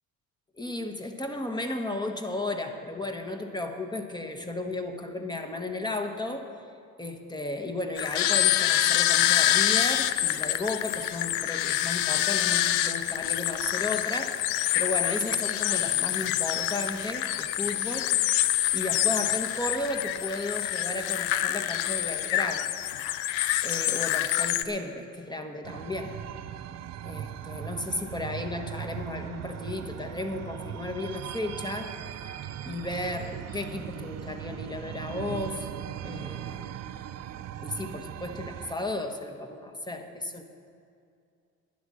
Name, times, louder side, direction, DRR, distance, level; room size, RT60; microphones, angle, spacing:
voice 1, 0.6-6.5 7.0-14.4 14.7-18.1 18.7-22.7 23.6-26.2 27.0-31.9 32.7-35.7 36.0-36.8 37.6-40.4, left 2 dB, 10° left, 5 dB, 1.2 m, -34 dB
sound 1, 8.0-24.6, left 13 dB, 80° left, 0.6 m, -26 dB
sound 2, 25.6-38.7, right 10 dB, 45° right, 0.6 m, -39 dB
11.5 x 9.3 x 6.3 m, 2.4 s
supercardioid pair, 75°, 37 cm